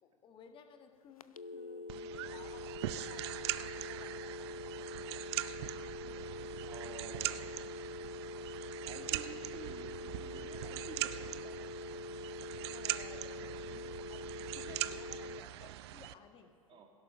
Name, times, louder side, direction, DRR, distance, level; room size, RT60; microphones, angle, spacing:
voice 1, 0.0-2.7 3.0-4.4 6.0-6.8 7.5-7.7 12.7-16.8, left 7 dB, 30° left, 6 dB, 1.6 m, -58 dB
sound 1, 1.2-15.4, left 3 dB, 80° left, 0.5 m, -45 dB
sound 2, 1.9-16.1, right 15 dB, 50° right, 0.5 m, -41 dB
voice 2, 6.6-7.4 8.9-11.6 16.7-16.9, right 6 dB, 25° right, 3 dB, 2.1 m, -51 dB
16.5 x 11.5 x 6.1 m, 2.4 s
figure-of-eight pair, 90°, 18 cm